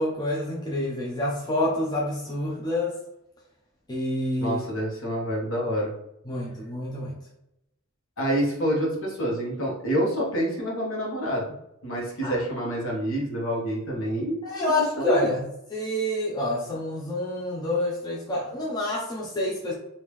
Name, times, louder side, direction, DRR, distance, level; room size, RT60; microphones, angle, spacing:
voice 1, 0.0-2.9 3.9-4.6 6.3-7.1 12.2-12.4 14.4-19.7, left 1 dB, 20° left, -4 dB, 0.6 m, -28 dB
voice 2, 4.4-5.9 8.2-11.4 11.8-14.7 15.0-15.3, right 1 dB, 60° left, -3 dB, 1.3 m, -27 dB
3.6 x 2.7 x 3.1 m, 0.83 s
head